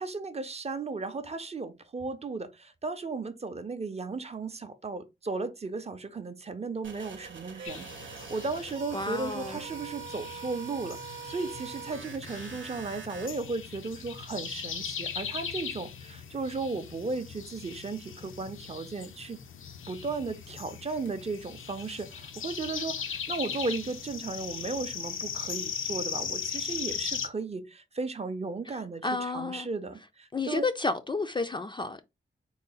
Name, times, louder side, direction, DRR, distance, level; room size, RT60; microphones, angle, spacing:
voice 1, 0.0-19.4 19.9-30.7, right 3 dB, 30° right, 0.5 m, -35 dB
sound 1, 6.8-13.3, right 6 dB, 70° right, 0.8 m, -43 dB
sound 2, 7.6-27.3, left 7 dB, 85° left, 0.6 m, -39 dB
voice 2, 8.9-9.6 28.7-29.7 30.3-32.0, left 3 dB, 25° left, 0.3 m, -31 dB
3.8 x 2.0 x 3.8 m
wide cardioid pair, 105°, 20 cm